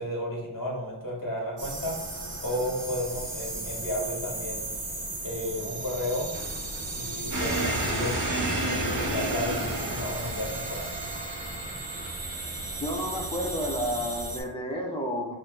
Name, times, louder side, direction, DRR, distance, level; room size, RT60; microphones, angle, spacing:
voice 1, 0.0-1.9 2.4-4.6 5.2-6.3 6.9-8.1 8.6-10.9, left 1 dB, 40° left, -3 dB, 1.4 m, -33 dB
sound 1, 1.6-14.4, right 2 dB, 80° right, 1.1 m, -36 dB
sound 2, 6.3-12.1, left 1 dB, 25° right, 1.0 m, -47 dB
sound 3, 7.3-13.8, right 1 dB, 40° right, 0.7 m, -32 dB
voice 2, 12.8-15.3, equal, 10° left, -2 dB, 0.5 m, -31 dB
4.6 x 2.1 x 3.1 m, 0.95 s
wide cardioid pair, 65°, 47 cm